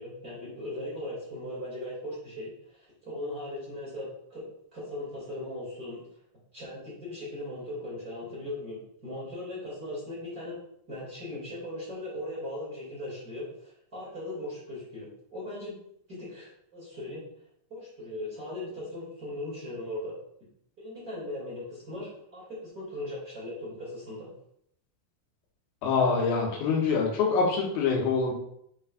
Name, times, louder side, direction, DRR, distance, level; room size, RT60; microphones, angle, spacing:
voice 1, 0.0-4.5 4.7-6.0 6.5-10.6 10.9-15.7 16.1-17.2 17.7-20.2 20.8-24.3, left 1 dB, 25° right, -8 dB, 2.2 m, -38 dB
voice 2, 25.8-28.3, left 4 dB, 85° left, -2 dB, 3.3 m, -25 dB
7.2 x 6.4 x 2.4 m, 0.71 s
omnidirectional pair, 4.4 m